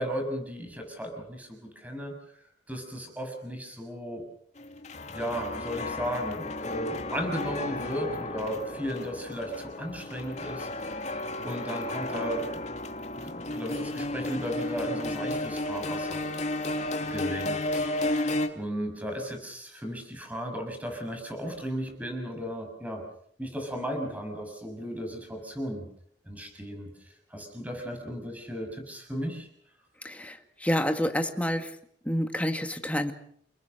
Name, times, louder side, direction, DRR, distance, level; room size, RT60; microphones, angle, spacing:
voice 1, 0.0-2.1 2.7-4.2 5.1-11.1 11.4-12.6 13.2-16.6 17.1-23.0 23.4-25.8 26.3-26.9 27.3-29.5, equal, 10° right, 4 dB, 6.6 m, -35 dB
sound 1, 4.6-18.5, left 1 dB, 40° left, 2.4 m, -33 dB
voice 2, 30.0-31.7 32.1-33.1, equal, 10° left, 6 dB, 2.0 m, -28 dB
30.0 x 20.0 x 6.7 m, 0.64 s
head